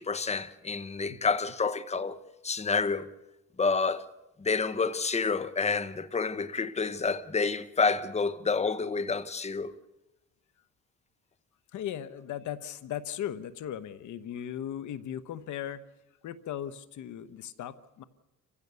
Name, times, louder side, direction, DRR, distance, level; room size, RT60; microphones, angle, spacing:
voice 1, 0.0-3.1 3.6-4.0 4.4-9.7, left 4 dB, 20° left, 1.0 m, -29 dB
voice 2, 11.7-15.8 16.2-18.0, left 10 dB, 75° left, 1.1 m, -37 dB
29.0 x 15.5 x 6.9 m
cardioid pair, 90°, 30 cm